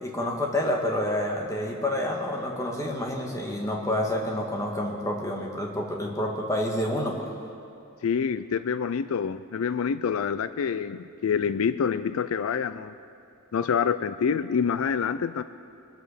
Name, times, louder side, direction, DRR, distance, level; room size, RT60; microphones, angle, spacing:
voice 1, 0.0-7.3, left 1 dB, 15° left, 0 dB, 1.7 m, -28 dB
voice 2, 8.0-12.9 13.5-15.4, left 6 dB, 80° left, 14 dB, 0.4 m, -27 dB
23.5 x 8.2 x 6.6 m, 2.5 s
head